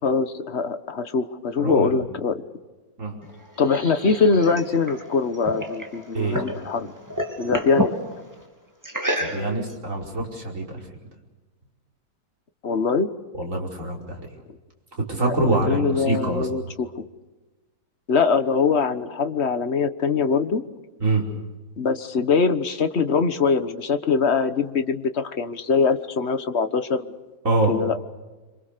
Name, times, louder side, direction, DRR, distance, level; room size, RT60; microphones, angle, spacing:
voice 1, 0.0-2.4 3.6-6.9 7.4-8.0 12.6-13.1 15.2-17.0 18.1-20.6 21.8-27.1 27.7-28.0, left 5 dB, 40° left, 10 dB, 1.4 m, -23 dB
voice 2, 1.6-2.0 3.0-3.2 6.1-6.4 9.2-10.7 13.4-14.2 15.1-16.5 21.0-21.2 27.5-27.7, right 2 dB, 40° right, 0 dB, 5.5 m, -24 dB
sound 1, 3.2-6.6 6.9-8.0 8.8-9.7, equal, 10° right, 3.1 m, -29 dB
27.0 x 26.0 x 6.8 m, 1.2 s
omnidirectional pair, 2.0 m